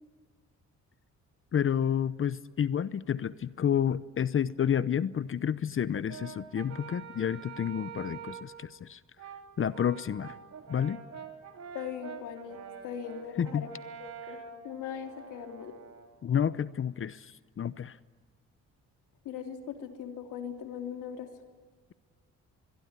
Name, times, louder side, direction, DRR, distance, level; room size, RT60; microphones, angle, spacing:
voice 1, 1.5-9.0 9.6-10.4 10.7-11.0 13.4-13.6 16.2-18.0, left 8 dB, 45° left, 17 dB, 0.8 m, -30 dB
Brass instrument, 6.1-8.6 9.2-16.1, right 7 dB, 60° right, 3.4 m, -46 dB
voice 2, 11.7-12.6 12.8-13.7 14.0-15.7 19.2-21.3, left 8 dB, 90° left, 5 dB, 3.3 m, -40 dB
25.5 x 22.5 x 9.8 m, 1.5 s
cardioid pair, 90°, 30 cm